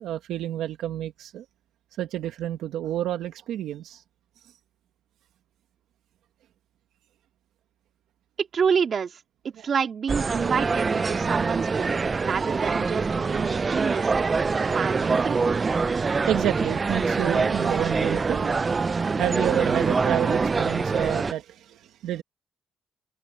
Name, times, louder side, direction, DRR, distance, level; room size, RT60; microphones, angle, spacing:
voice 1, 0.0-1.4 2.0-4.0 16.0-18.6 18.9-22.2, right 12 dB, 85° right, 1.5 m, -29 dB
voice 2, 8.4-9.2 9.4-11.9 12.2-14.1 14.7-15.4, right 6 dB, 50° right, 2.8 m, -28 dB
sound 1, 10.1-21.3, right 4 dB, 30° right, 0.3 m, -25 dB
open air
cardioid pair, 90°, 0 cm